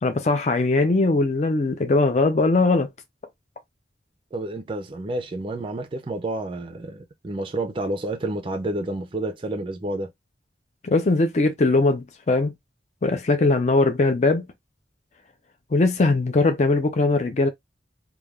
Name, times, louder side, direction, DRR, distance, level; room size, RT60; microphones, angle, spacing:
voice 1, 0.0-2.9 10.8-12.5 13.0-14.4 15.7-17.5, left 3 dB, 40° left, 0.4 m, -20 dB
voice 2, 4.3-10.1, right 1 dB, 30° right, 0.4 m, -29 dB
3.3 x 2.2 x 2.2 m
head